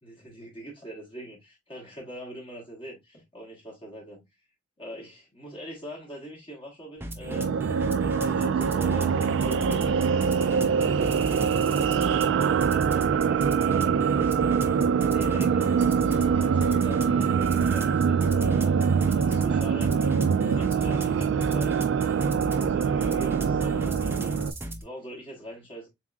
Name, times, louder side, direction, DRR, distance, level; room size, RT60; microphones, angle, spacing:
voice 1, 0.0-4.2 4.8-10.4 11.2-14.4 15.0-15.8 16.2-20.0 20.4-21.8 22.5-25.9, right 1 dB, 25° left, 1.1 m, -43 dB
sound 1, 7.0-24.8, right 1 dB, 10° right, 0.5 m, -37 dB
sound 2, 7.2-24.5, right 6 dB, 70° right, 0.3 m, -24 dB
sound 3, 9.9-20.6, right 1 dB, 30° right, 0.9 m, -45 dB
7.1 x 2.4 x 2.4 m
head